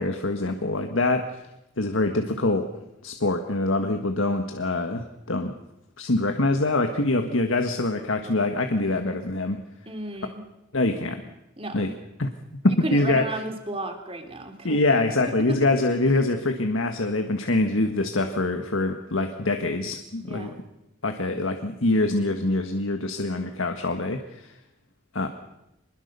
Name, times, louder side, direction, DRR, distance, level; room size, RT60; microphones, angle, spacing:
voice 1, 0.0-1.4 1.8-2.7 3.0-5.5 6.0-9.6 10.7-11.2 11.7-11.9 12.2-12.3 12.6-13.2 14.6-20.5 21.0-24.5 25.1-25.3, left 2 dB, 85° left, 6 dB, 1.6 m, -24 dB
voice 2, 9.9-10.4 11.6-11.9 12.7-14.8 15.3-15.7 20.2-20.6, right 2 dB, 30° right, 6 dB, 2.9 m, -33 dB
24.5 x 21.5 x 6.9 m, 0.90 s
head